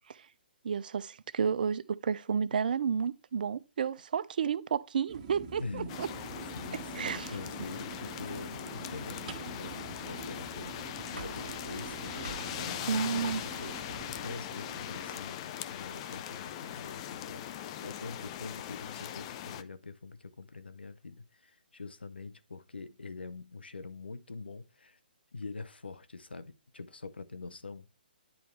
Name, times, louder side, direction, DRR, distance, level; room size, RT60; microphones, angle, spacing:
voice 1, 0.6-6.1 6.9-7.3 12.9-13.4, right 7 dB, 60° right, 0.5 m, -31 dB
sound 1, 5.1-15.2, right 6 dB, 40° right, 1.4 m, -46 dB
voice 2, 5.4-6.2 6.5-25.0 25.3-27.9, left 4 dB, 90° left, 0.8 m, -45 dB
sound 2, 5.6-14.2, right 3 dB, 85° right, 1.1 m, -50 dB
sound 3, 5.9-19.6, left 11 dB, 35° left, 0.6 m, -41 dB
10.5 x 4.4 x 3.2 m
hypercardioid pair, 140°, 5 cm